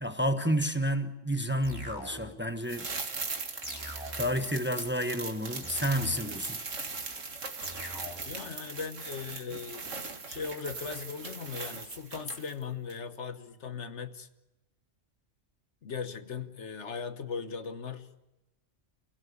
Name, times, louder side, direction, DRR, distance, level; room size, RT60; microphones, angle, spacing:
voice 1, 0.0-2.9 4.1-6.6, equal, 10° right, 1.1 m, -30 dB
sound 1, 1.6-2.5 3.6-4.5 5.6-6.5 7.6-8.5, equal, 20° left, 3.6 m, -43 dB
sound 2, 2.6-12.6 12.9-13.0, right 4 dB, 80° right, 2.2 m, -39 dB
voice 2, 8.2-14.3 15.8-18.1, left 6 dB, 70° left, 1.4 m, -38 dB
28.5 x 17.0 x 8.3 m
omnidirectional pair, 1.3 m